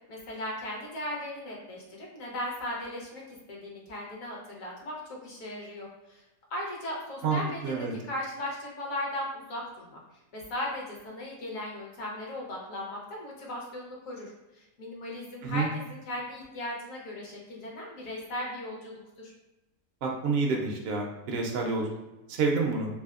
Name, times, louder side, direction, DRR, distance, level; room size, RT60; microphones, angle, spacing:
voice 1, 0.1-6.2 6.5-10.0 10.3-19.3, left 1 dB, 70° left, -2 dB, 1.2 m, -37 dB
voice 2, 20.0-21.8 22.3-22.9, right 4 dB, 65° right, 0 dB, 0.6 m, -28 dB
3.4 x 2.7 x 2.4 m, 1.0 s
omnidirectional pair, 1.5 m